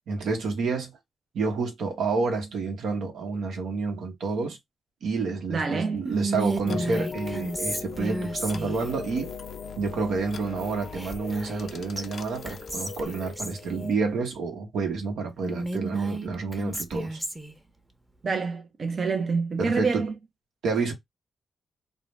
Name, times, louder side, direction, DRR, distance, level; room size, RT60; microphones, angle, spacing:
voice 1, 0.1-1.0 1.3-4.6 5.0-9.3 9.8-17.2 19.6-20.0 20.6-20.9, right 4 dB, 85° right, 0.9 m, -29 dB
voice 2, 5.5-6.1 18.2-20.1, right 4 dB, 50° right, 0.5 m, -27 dB
Whispering, 6.1-8.9 10.9-11.7 12.0-12.1 12.4-13.6 15.4-17.6, right 2 dB, 15° right, 0.7 m, -32 dB
sound 1, 6.7-13.9, left 6 dB, 65° left, 0.4 m, -38 dB
2.5 x 2.0 x 3.1 m
cardioid pair, 65°, 0 cm